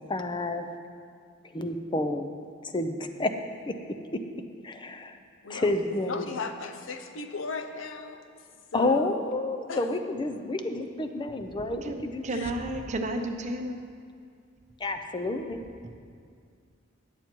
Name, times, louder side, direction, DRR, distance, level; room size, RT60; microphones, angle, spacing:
voice 1, 0.1-0.7 1.5-2.3 2.6-3.3 3.7-3.8 4.6-5.2 5.5-6.3 8.7-12.2 14.8-15.6, left 2 dB, 25° left, 7 dB, 0.5 m, -29 dB
voice 2, 6.0-8.2 8.7-9.2 9.7-9.8 12.3-12.5, left 4 dB, 75° left, 7 dB, 0.6 m, -36 dB
voice 3, 11.8-13.8, right 1 dB, 35° right, 5 dB, 0.7 m, -32 dB
10.5 x 7.3 x 4.5 m, 2.2 s
head